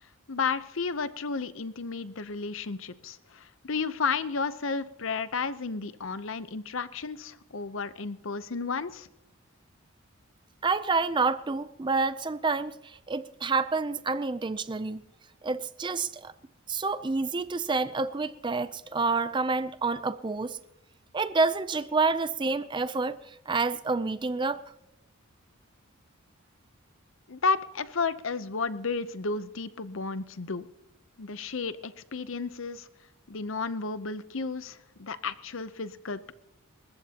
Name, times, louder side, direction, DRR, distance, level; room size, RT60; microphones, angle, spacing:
voice 1, 0.3-9.1 27.3-30.7 31.2-32.9 33.3-36.3, left 4 dB, 60° left, 14 dB, 0.7 m, -32 dB
voice 2, 10.6-15.0 15.4-16.3 16.7-20.6 21.1-24.6, right 4 dB, 20° right, 13 dB, 0.5 m, -28 dB
28.5 x 14.5 x 2.9 m, 0.85 s
head